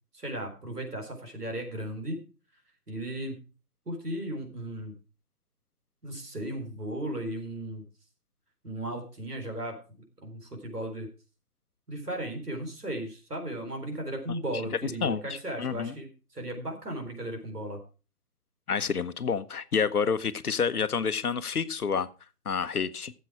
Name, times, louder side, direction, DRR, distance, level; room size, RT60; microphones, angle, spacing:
voice 1, 0.1-2.2 2.9-3.4 3.9-4.9 6.0-7.8 8.6-11.1 11.9-17.8, right 1 dB, 80° right, 3 dB, 4.2 m, -36 dB
voice 2, 14.8-15.9 18.7-22.1 22.4-23.1, left 6 dB, 70° left, 13 dB, 1.0 m, -29 dB
13.0 x 7.7 x 4.7 m, 0.34 s
figure-of-eight pair, 140°, 46 cm